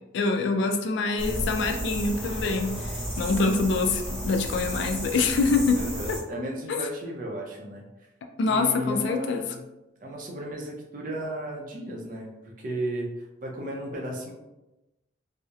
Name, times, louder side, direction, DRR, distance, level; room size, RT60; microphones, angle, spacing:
voice 1, 0.1-5.8 6.1-6.2 6.7-6.8 8.4-9.4, left 3 dB, 70° left, 4 dB, 0.3 m, -25 dB
sound 1, 1.2-6.2, equal, 5° left, 0.7 m, -33 dB
voice 2, 5.7-8.1 8.5-9.6 10.0-13.1 13.4-14.3, right 1 dB, 45° right, -1 dB, 0.4 m, -34 dB
2.8 x 2.0 x 2.3 m, 0.99 s
head